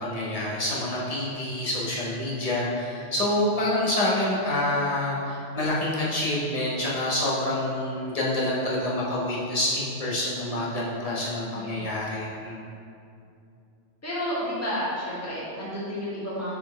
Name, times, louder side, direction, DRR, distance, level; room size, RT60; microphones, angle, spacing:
voice 1, 0.0-12.6, left 1 dB, 30° left, -6 dB, 1.1 m, -27 dB
voice 2, 14.0-16.6, equal, 10° left, -9 dB, 1.4 m, -31 dB
7.2 x 4.3 x 3.2 m, 2.6 s
omnidirectional pair, 1.3 m